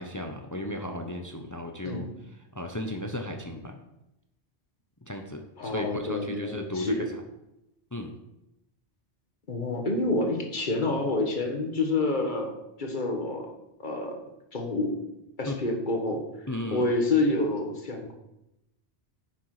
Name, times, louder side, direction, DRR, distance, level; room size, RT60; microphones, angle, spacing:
voice 1, 0.0-2.1 2.5-3.8 5.1-6.9 7.9-8.1 15.5-15.6 16.5-16.9, left 1 dB, 20° left, 4 dB, 0.8 m, -35 dB
voice 2, 5.6-7.1 9.5-12.5 12.8-13.5 13.8-14.1 14.5-15.0 15.4-16.2 16.7-18.1, left 2 dB, 45° left, 2 dB, 1.7 m, -28 dB
9.8 x 6.8 x 4.9 m, 0.89 s
omnidirectional pair, 1.2 m